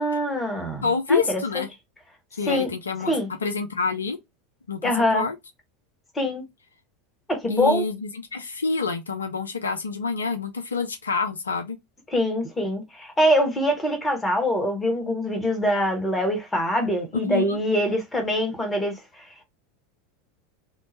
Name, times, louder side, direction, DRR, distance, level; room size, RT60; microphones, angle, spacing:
voice 1, 0.0-1.4 2.5-2.7 3.1-3.3 4.8-5.2 6.1-6.4 7.3-7.8 12.1-19.4, equal, 15° left, 1.2 m, -24 dB
voice 2, 0.8-1.7 2.4-3.1 3.4-4.2 4.7-4.8 5.1-5.4 7.5-11.8 17.1-17.6, left 4 dB, 75° left, 0.4 m, -27 dB
2.8 x 2.1 x 2.6 m
figure-of-eight pair, 80°, 0 cm